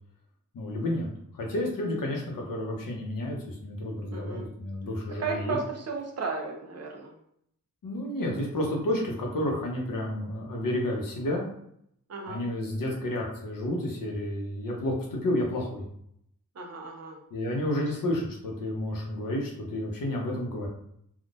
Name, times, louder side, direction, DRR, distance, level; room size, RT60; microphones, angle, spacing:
voice 1, 0.5-1.1 1.3-5.6 7.8-11.4 12.3-15.8 17.3-20.7, left 1 dB, 80° left, -1 dB, 1.0 m, -31 dB
voice 2, 4.1-4.4 5.2-7.1 12.1-12.4 16.6-17.2, right 4 dB, 50° right, 1 dB, 0.7 m, -34 dB
3.6 x 2.4 x 2.5 m, 0.71 s
wide cardioid pair, 130°, 33 cm